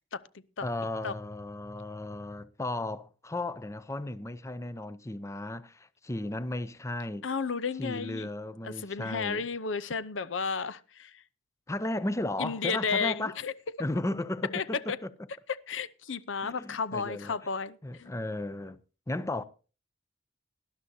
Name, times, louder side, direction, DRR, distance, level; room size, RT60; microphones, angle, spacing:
voice 1, 0.6-7.2 7.8-9.4 11.7-13.3 13.8-15.1 16.4-17.4 17.8-18.8 19.1-19.4, left 1 dB, 15° left, 0.6 m, -35 dB
voice 2, 7.2-8.3 8.6-11.2 12.4-13.5 14.5-15.0 15.7-18.1, left 5 dB, 90° left, 0.7 m, -33 dB
19.0 x 11.5 x 2.7 m
head